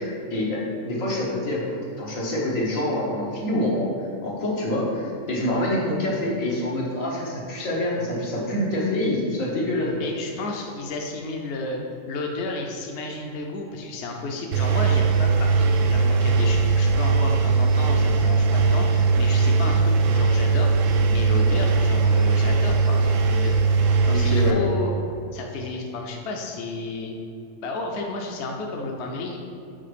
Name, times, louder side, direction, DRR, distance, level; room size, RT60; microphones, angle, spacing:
voice 1, 0.0-3.9 4.2-10.1 24.1-24.6, left 1 dB, 85° left, -4 dB, 1.7 m, -26 dB
voice 2, 10.0-11.8 12.1-23.6 24.0-24.9 25.3-27.2 27.6-29.4, left 2 dB, 65° left, 1 dB, 0.9 m, -32 dB
Engine, 14.5-24.5, right 4 dB, 75° right, 1.0 m, -20 dB
5.6 x 4.4 x 5.0 m, 2.7 s
omnidirectional pair, 1.4 m